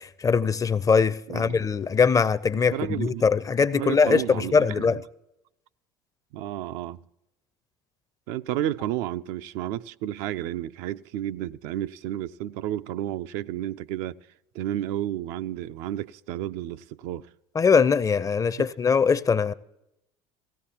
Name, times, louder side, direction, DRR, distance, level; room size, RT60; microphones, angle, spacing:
voice 1, 0.0-5.0 17.6-19.5, left 5 dB, 25° left, 0.4 m, -22 dB
voice 2, 1.3-1.6 2.7-3.2 3.7-5.0 6.3-7.0 8.3-14.2 14.5-17.3, right 12 dB, 70° right, 0.4 m, -31 dB
17.0 x 15.5 x 2.9 m
hypercardioid pair, 80°, 15 cm